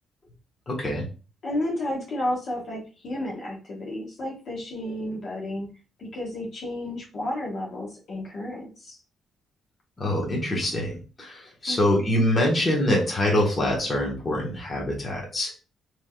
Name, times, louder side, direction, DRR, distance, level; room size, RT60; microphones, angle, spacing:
voice 1, 0.7-1.0 10.0-15.5, left 1 dB, 30° left, -2 dB, 1.1 m, -25 dB
voice 2, 1.4-5.7 6.0-9.0 11.7-11.9, left 1 dB, 55° left, -2 dB, 1.1 m, -32 dB
3.3 x 2.9 x 2.2 m, 0.33 s
cardioid pair, 90°, 0 cm